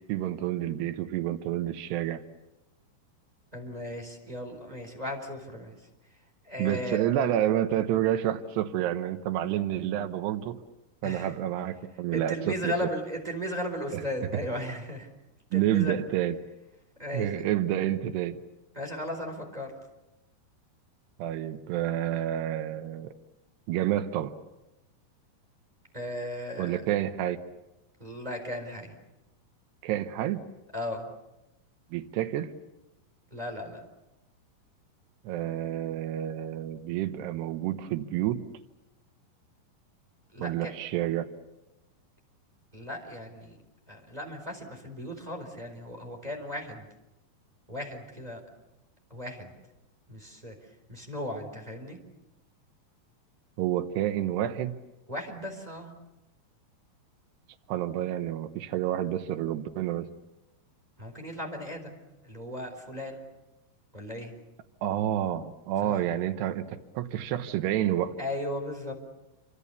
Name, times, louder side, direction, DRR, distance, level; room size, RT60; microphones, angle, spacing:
voice 1, 0.1-2.2 6.6-10.6 11.0-12.9 13.9-14.0 15.5-16.4 17.1-18.4 21.2-23.1 23.7-24.3 26.6-27.4 29.8-30.4 31.9-32.5 35.2-38.4 40.4-41.3 53.6-54.8 57.7-60.1 64.8-68.1, right 12 dB, 90° right, 9 dB, 3.2 m, -29 dB
voice 2, 3.5-5.8 6.4-7.0 11.0-11.3 12.1-15.1 15.5-15.9 17.0-17.4 18.7-19.7 25.9-26.8 28.0-29.0 30.7-31.1 33.3-33.8 40.3-40.7 42.7-43.6 43.9-46.9 47.7-48.4 49.1-49.5 50.1-50.6 50.9-52.0 55.1-55.9 61.0-62.0 62.2-63.2 63.9-64.3 65.8-66.0 68.2-68.9, left 1 dB, 10° right, 3 dB, 3.9 m, -36 dB
28.5 x 25.5 x 7.0 m, 0.95 s
omnidirectional pair, 4.6 m